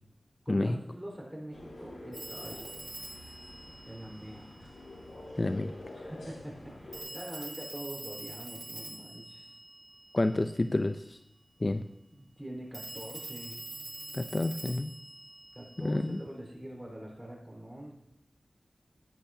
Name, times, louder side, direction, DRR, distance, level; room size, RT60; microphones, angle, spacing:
voice 1, 0.4-2.6 3.9-4.7 5.9-9.5 12.0-13.6 15.5-17.9, right 1 dB, 10° right, -2 dB, 4.3 m, -44 dB
sound 1, 1.5-7.0, left 1 dB, 90° left, 4.6 m, -47 dB
Telephone, 2.1-4.8 6.9-10.6 12.7-16.2, right 2 dB, 55° right, 4.6 m, -45 dB
voice 2, 5.4-5.7 10.1-11.2 11.6-11.8 14.1-14.9 15.8-16.2, left 2 dB, 40° left, 8 dB, 0.5 m, -29 dB
15.0 x 10.0 x 2.8 m, 0.88 s
wide cardioid pair, 60°, 0 cm